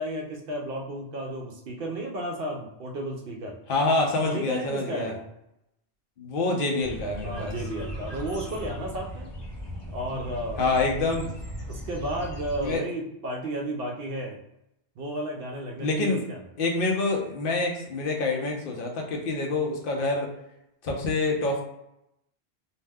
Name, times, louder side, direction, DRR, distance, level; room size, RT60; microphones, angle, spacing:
voice 1, 0.0-3.6 4.2-5.2 7.2-9.3 9.9-11.1 11.7-14.4 15.0-16.4, right 1 dB, 65° right, 1 dB, 0.7 m, -33 dB
voice 2, 3.7-5.2 6.2-7.6 10.6-11.3 12.6-12.8 15.8-16.3 16.6-20.3 20.8-21.6, left 3 dB, 60° left, 1 dB, 0.8 m, -26 dB
sound 1, 6.8-12.8, equal, 35° left, 0.4 m, -38 dB
2.6 x 2.1 x 3.4 m, 0.84 s
omnidirectional pair, 1.1 m